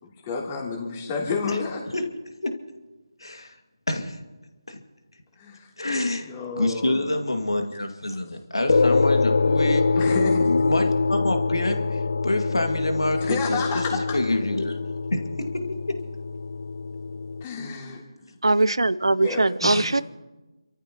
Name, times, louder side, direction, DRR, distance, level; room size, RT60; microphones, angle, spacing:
voice 1, 0.0-1.8 5.4-5.7 6.2-7.1 9.9-10.5 13.2-14.2 17.4-18.0 19.2-19.9, left 4 dB, 20° left, -2 dB, 3.2 m, -30 dB
voice 2, 3.2-3.5 3.9-4.2 4.7-4.8 5.8-6.3 6.6-9.9 10.4-13.9 14.1-14.8 15.1-15.6, left 1 dB, 80° left, 4 dB, 2.3 m, -27 dB
sound 1, 8.7-17.4, left 4 dB, 55° left, 0.4 m, -24 dB
voice 3, 18.4-20.0, right 2 dB, 80° right, 18 dB, 0.7 m, -21 dB
29.5 x 14.0 x 3.0 m, 1.2 s
figure-of-eight pair, 160°, 3 cm